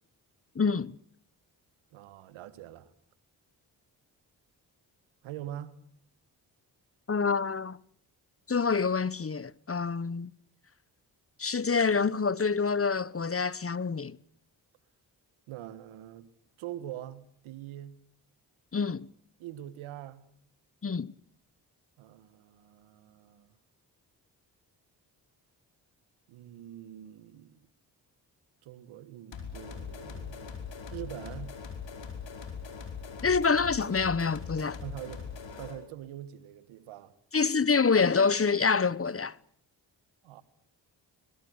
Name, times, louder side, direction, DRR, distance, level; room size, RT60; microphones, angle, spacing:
voice 1, 0.6-0.9 7.1-7.8 8.5-10.3 11.4-14.2 18.7-19.1 20.8-21.1 33.2-34.8 37.3-39.3, left 5 dB, 30° left, 1.0 m, -26 dB
voice 2, 1.9-2.9 5.2-5.8 15.5-16.3 16.6-18.0 19.4-20.3 22.0-23.5 26.3-27.7 28.6-30.5 30.9-31.6 34.8-35.3 35.6-37.1 40.2-40.4, right 12 dB, 90° right, 1.6 m, -44 dB
sound 1, 29.3-35.8, left 6 dB, 65° left, 5.3 m, -41 dB
22.5 x 22.0 x 8.1 m
supercardioid pair, 40°, 47 cm